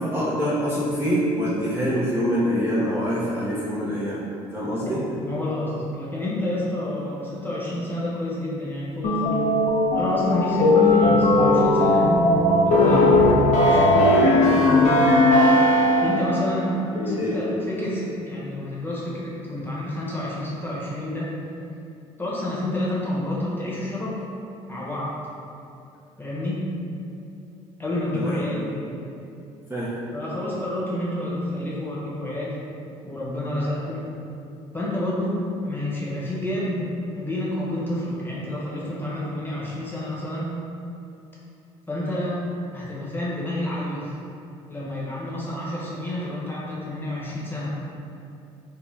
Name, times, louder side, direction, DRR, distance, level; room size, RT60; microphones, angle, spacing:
voice 1, 0.0-4.2 4.5-5.0 16.9-17.4 28.1-28.4 29.7-29.9, equal, 15° right, -9 dB, 0.5 m, -25 dB
voice 2, 4.8-9.4 9.9-12.2 12.6-13.2 13.6-14.8 16.0-16.7 17.1-21.3 22.2-24.1 24.7-25.1 26.2-26.6 27.8-29.0 30.1-32.6 33.0-34.0 34.7-40.5 41.9-42.4 42.7-44.1 44.7-47.7, left 1 dB, 15° left, -7 dB, 0.9 m, -29 dB
sound 1, 9.0-16.3, left 1 dB, 55° left, 0.5 m, -17 dB
2.6 x 2.0 x 3.3 m, 2.7 s
supercardioid pair, 70°, 14 cm